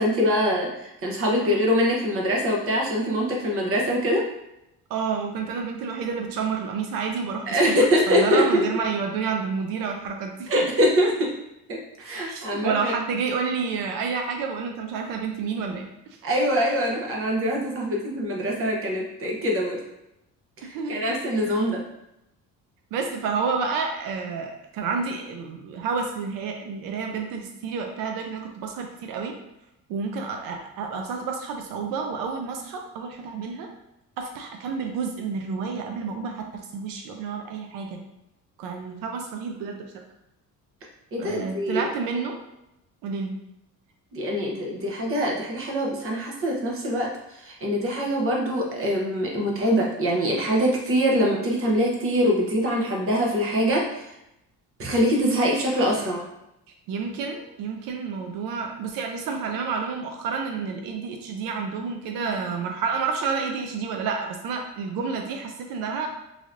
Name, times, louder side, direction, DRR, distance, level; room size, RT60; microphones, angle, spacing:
voice 1, 0.0-4.2 7.5-8.6 10.5-11.3 11.7-12.9 16.2-19.8 20.6-21.8 41.1-41.9 44.1-54.1 54.8-56.3, equal, 40° right, -1 dB, 0.7 m, -24 dB
voice 2, 4.9-7.8 8.1-10.7 12.3-15.9 20.7-21.2 21.5-21.6 22.9-29.3 29.9-33.7 34.2-38.0 38.6-40.0 41.2-42.4 43.0-43.3 56.9-66.1, right 5 dB, 90° right, 3 dB, 0.5 m, -29 dB
3.2 x 2.6 x 2.5 m, 0.86 s
cardioid pair, 150°, 33 cm